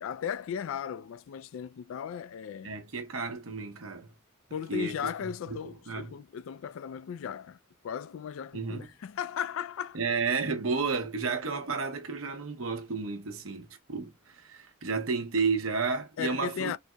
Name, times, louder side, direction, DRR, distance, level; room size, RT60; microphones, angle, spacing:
voice 1, 0.0-2.7 4.5-7.6 7.8-10.0 16.2-16.8, left 8 dB, 65° left, 0.3 m, -36 dB
voice 2, 2.6-4.1 4.7-5.6 5.9-6.1 8.5-8.9 9.9-16.8, right 4 dB, 65° right, 0.8 m, -32 dB
4.0 x 2.2 x 2.2 m
head